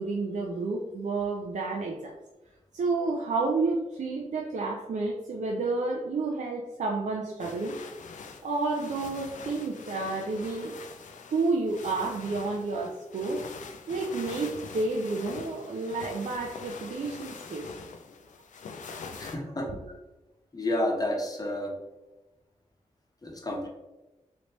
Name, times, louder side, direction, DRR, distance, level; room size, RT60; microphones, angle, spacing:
voice 1, 0.0-2.1 2.7-7.8 8.4-10.7 11.3-13.4 13.9-17.7 18.9-19.4 19.6-19.8, right 3 dB, 65° right, -1 dB, 0.4 m, -30 dB
sound 1, 7.4-19.4, left 5 dB, 70° left, 0.4 m, -44 dB
voice 2, 19.2-19.7 20.5-21.7 23.2-23.7, left 1 dB, 30° left, 0 dB, 0.9 m, -30 dB
3.2 x 2.7 x 2.9 m, 1.0 s
cardioid pair, 45°, 13 cm